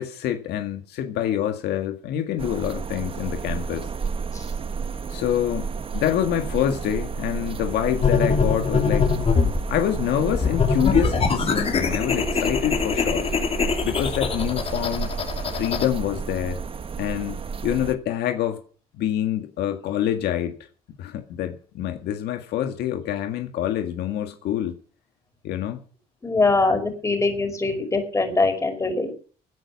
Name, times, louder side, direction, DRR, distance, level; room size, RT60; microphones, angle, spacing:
voice 1, 0.0-3.9 5.1-9.1 9.7-13.3 13.8-15.1 15.5-16.6 17.0-17.4 17.6-18.6 18.9-20.6 21.0-24.8 25.4-25.8, left 11 dB, 75° left, 1.9 m, -26 dB
sound 1, 2.4-17.9, right 5 dB, 35° right, 1.3 m, -31 dB
sound 2, 8.0-9.6 10.3-15.9, left 5 dB, 35° left, 2.8 m, -23 dB
voice 2, 26.2-29.2, left 3 dB, 20° left, 5.1 m, -22 dB
17.0 x 9.9 x 5.9 m
cardioid pair, 110°, 17 cm